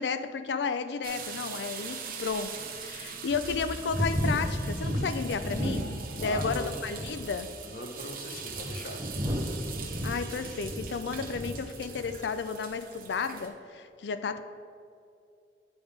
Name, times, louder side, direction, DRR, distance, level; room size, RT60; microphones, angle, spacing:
voice 1, 0.0-7.5 10.0-14.4, left 5 dB, 75° left, 11 dB, 0.4 m, -33 dB
sound 1, 1.0-13.5, right 6 dB, 50° right, 0.8 m, -42 dB
sound 2, 1.1-1.2 1.8-1.9 2.5-2.6 3.3-6.6 6.9-7.4 8.1-11.6 11.9-12.2, equal, 25° right, 0.8 m, -33 dB
voice 2, 6.2-6.7 7.6-9.0, left 2 dB, 55° left, 4 dB, 0.7 m, -39 dB
9.2 x 3.5 x 4.9 m, 2.4 s
head